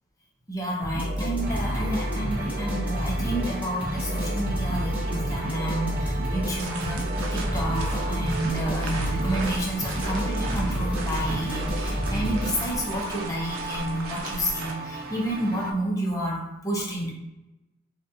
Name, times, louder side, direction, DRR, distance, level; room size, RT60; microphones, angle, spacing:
voice 1, 0.5-17.1, right 1 dB, 15° left, -3 dB, 0.7 m, -30 dB
sound 1, 0.8-13.0, equal, 5° right, 1.1 m, -29 dB
sound 2, 1.4-15.7, right 3 dB, 45° right, 0.6 m, -37 dB
sound 3, 6.5-14.7, right 2 dB, 90° right, 0.6 m, -37 dB
3.9 x 2.5 x 2.8 m, 0.97 s
head